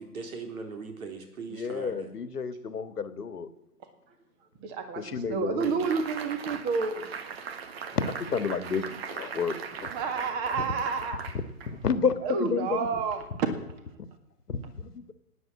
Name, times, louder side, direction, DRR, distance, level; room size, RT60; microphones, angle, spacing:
voice 1, 0.0-2.1, right 4 dB, 65° right, 5 dB, 3.8 m, -39 dB
voice 2, 1.5-3.5 4.9-5.7 7.9-9.9 10.6-10.7 11.7-13.0 14.5-15.1, left 5 dB, 80° left, 11 dB, 1.7 m, -31 dB
voice 3, 4.6-7.0 9.9-11.2 12.2-13.2, right 5 dB, 20° right, 8 dB, 1.8 m, -30 dB
sound 1, 5.6-12.1, right 6 dB, 40° right, 1.4 m, -40 dB
16.5 x 9.8 x 8.6 m, 0.89 s
hypercardioid pair, 145°, 45 cm